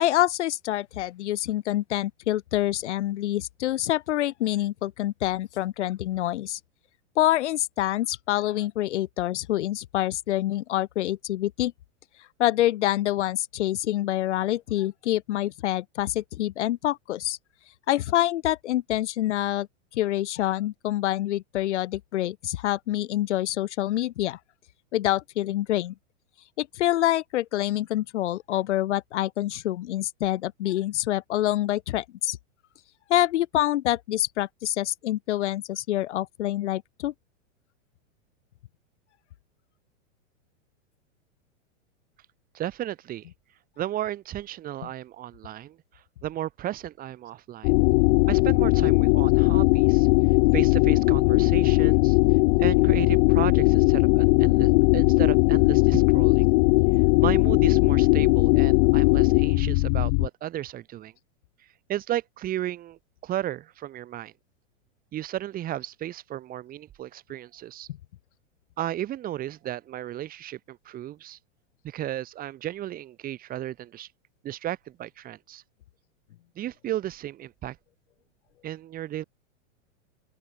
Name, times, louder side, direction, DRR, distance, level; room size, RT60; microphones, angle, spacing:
voice 1, 0.0-6.6 7.2-11.7 12.4-17.4 17.9-19.7 19.9-24.4 24.9-25.9 26.6-32.4 33.1-37.1, left 14 dB, 65° left, 2.2 m, -26 dB
voice 2, 42.5-43.3 43.8-45.8 46.2-47.7 48.3-50.1 50.5-52.2 52.6-56.5 57.2-61.1 61.9-64.3 65.1-67.9 68.8-71.4 71.8-74.1 74.4-75.6 76.6-77.8 78.6-79.2, right 13 dB, 20° right, 7.9 m, -34 dB
sound 1, 47.6-60.3, left 32 dB, 35° left, 1.1 m, -19 dB
open air
supercardioid pair, 165°, 38 cm